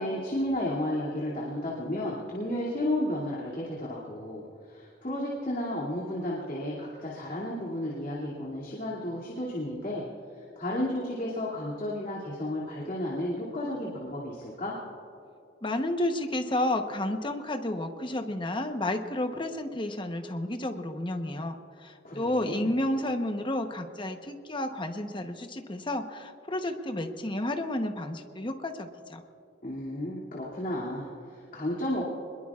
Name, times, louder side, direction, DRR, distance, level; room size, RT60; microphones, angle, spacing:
voice 1, 0.0-10.0 10.4-14.7 22.0-22.7 29.6-32.0, left 1 dB, 45° left, -5 dB, 2.6 m, -33 dB
voice 2, 15.6-29.2, left 1 dB, 25° left, 6 dB, 1.0 m, -31 dB
25.5 x 21.5 x 2.4 m, 2.6 s
head